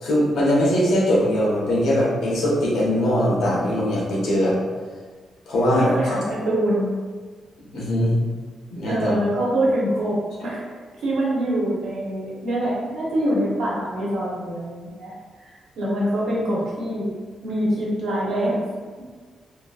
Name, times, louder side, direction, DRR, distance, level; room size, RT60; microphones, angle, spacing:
voice 1, 0.0-4.6 5.5-6.1 7.7-8.1 8.7-9.2, equal, 80° left, -5 dB, 1.0 m, -21 dB
voice 2, 5.7-6.9 8.8-10.7 10.9-15.1 15.4-17.1 17.4-18.6, right 1 dB, 85° right, -6 dB, 1.1 m, -24 dB
2.9 x 2.5 x 2.4 m, 1.5 s
cardioid pair, 135°, 0 cm